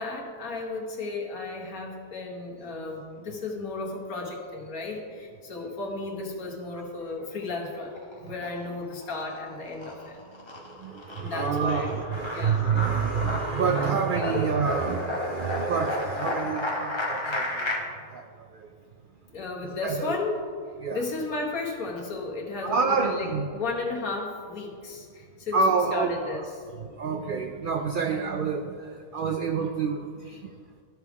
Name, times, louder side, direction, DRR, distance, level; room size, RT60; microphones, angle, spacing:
voice 1, 0.0-10.2 11.2-12.0 12.3-12.6 14.3-14.5 19.3-20.4 20.9-26.5 28.0-28.2, left 3 dB, 80° left, -1 dB, 1.7 m, -34 dB
sound 1, 7.8-8.6 9.0-17.8, left 2 dB, 25° left, 0.8 m, -32 dB
voice 2, 10.7-17.7 18.1-18.2 18.5-18.7 19.8-20.1 20.8-21.0 22.6-23.5 25.5-26.4 27.0-30.5, right 5 dB, 85° right, 4 dB, 0.4 m, -28 dB
13.5 x 4.7 x 3.6 m, 2.1 s
omnidirectional pair, 1.5 m